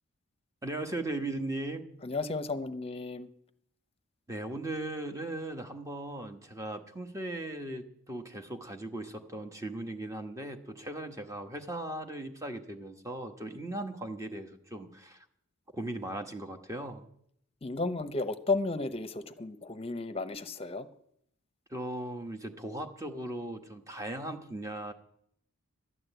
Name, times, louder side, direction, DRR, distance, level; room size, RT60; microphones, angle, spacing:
voice 1, 0.6-1.9 4.3-15.3 15.7-17.1 21.7-24.9, right 1 dB, 15° right, 6 dB, 1.2 m, -38 dB
voice 2, 2.0-3.3 17.6-20.9, left 3 dB, 25° left, 10 dB, 0.8 m, -33 dB
12.5 x 9.5 x 8.0 m, 0.70 s
head